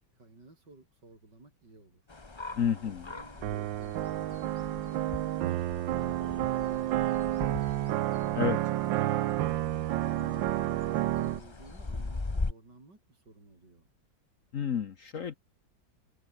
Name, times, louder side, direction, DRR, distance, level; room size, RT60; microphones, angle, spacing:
voice 1, 0.1-2.0 2.5-7.9 8.2-8.3 8.7-13.9, right 2 dB, 65° right, 7.0 m, -55 dB
sound 1, 2.1-12.5, left 3 dB, 20° left, 1.0 m, -41 dB
voice 2, 2.6-3.1 8.3-8.6 14.5-15.3, left 8 dB, 50° left, 1.2 m, -30 dB
sound 2, 3.4-11.4, right 14 dB, 90° right, 1.5 m, -30 dB
omnidirectional pair, 2.0 m